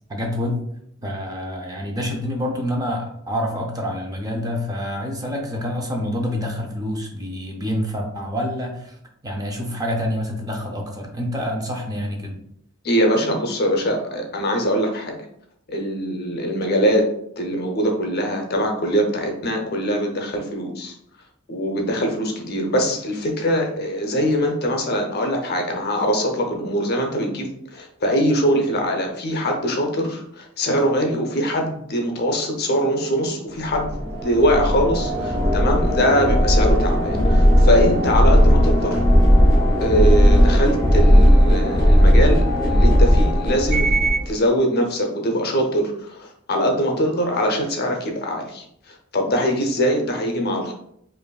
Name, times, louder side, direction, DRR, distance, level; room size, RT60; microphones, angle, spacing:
voice 1, 0.1-0.6 1.0-9.0 9.2-12.4, equal, 20° right, 1 dB, 0.5 m, -27 dB
voice 2, 12.8-15.2 15.7-17.0 17.4-21.0 21.5-39.0 39.8-50.7, equal, 50° left, 3 dB, 0.7 m, -22 dB
sound 1, 33.7-44.3, equal, 20° left, 0.9 m, -16 dB
5.0 x 2.5 x 2.3 m, 0.72 s
head